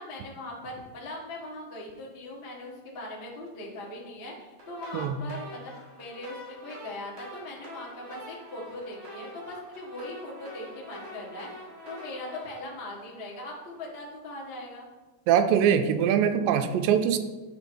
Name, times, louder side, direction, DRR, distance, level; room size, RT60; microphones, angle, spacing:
voice 1, 0.0-14.9, left 1 dB, 55° left, -4 dB, 0.6 m, -40 dB
sound 1, 4.6-13.7, left 1 dB, 45° right, 2.0 m, -46 dB
voice 2, 15.3-17.2, right 8 dB, 85° right, 8 dB, 2.3 m, -22 dB
9.5 x 3.9 x 4.5 m, 1.2 s
omnidirectional pair, 4.0 m